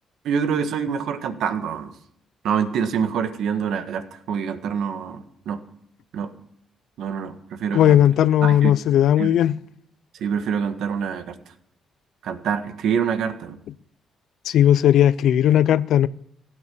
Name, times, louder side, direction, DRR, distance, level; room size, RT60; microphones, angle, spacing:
voice 1, 0.2-1.9 2.4-5.6 6.1-6.3 7.0-8.0 8.4-8.7 9.2-9.3 10.1-11.4 12.2-13.6, right 7 dB, 75° right, 1.5 m, -26 dB
voice 2, 7.7-9.5 14.5-16.1, left 11 dB, 75° left, 0.5 m, -17 dB
16.5 x 8.9 x 7.1 m
cardioid pair, 90°, 0 cm